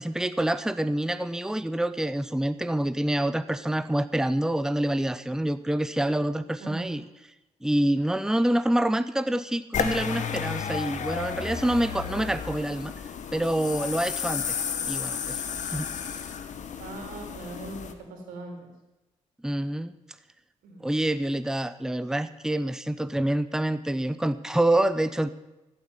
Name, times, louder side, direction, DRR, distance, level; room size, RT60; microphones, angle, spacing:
voice 1, 0.0-7.0 7.6-12.9 13.3-14.6 14.9-15.4 15.7-15.9 19.4-19.9 20.8-25.3, right 1 dB, 5° right, 13 dB, 0.8 m, -26 dB
voice 2, 6.6-7.0 16.8-18.7 20.6-20.9, right 2 dB, 85° right, 3 dB, 3.5 m, -40 dB
sound 1, 9.7-17.9, left 7 dB, 60° left, 1.4 m, -32 dB
15.0 x 7.8 x 9.8 m, 1.0 s
supercardioid pair, 55°, 14 cm